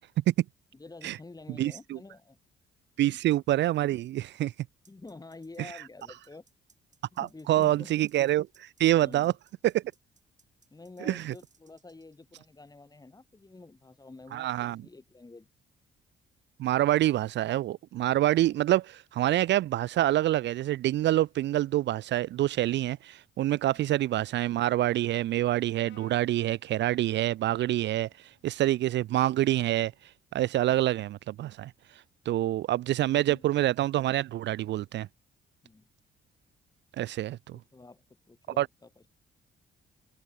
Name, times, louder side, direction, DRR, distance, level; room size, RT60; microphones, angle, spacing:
voice 1, 0.7-2.4 3.0-3.2 4.9-6.5 7.1-7.9 9.0-9.4 10.7-15.5 23.7-23.9 32.8-33.5 35.6-35.9 37.5-39.1, left 3 dB, 20° left, 2.6 m, -49 dB
voice 2, 1.6-2.0 3.0-4.5 7.2-9.3 9.6-9.8 11.1-11.3 14.3-14.8 16.6-28.1 28.4-29.9 30.3-31.7 32.3-35.1 37.0-37.6 38.6-38.7, right 14 dB, 65° right, 0.4 m, -26 dB
sound 1, 4.8-12.2, right 5 dB, 40° right, 5.9 m, -66 dB
Brass instrument, 25.8-30.0, left 10 dB, 70° left, 5.1 m, -64 dB
cardioid pair, 90°, 20 cm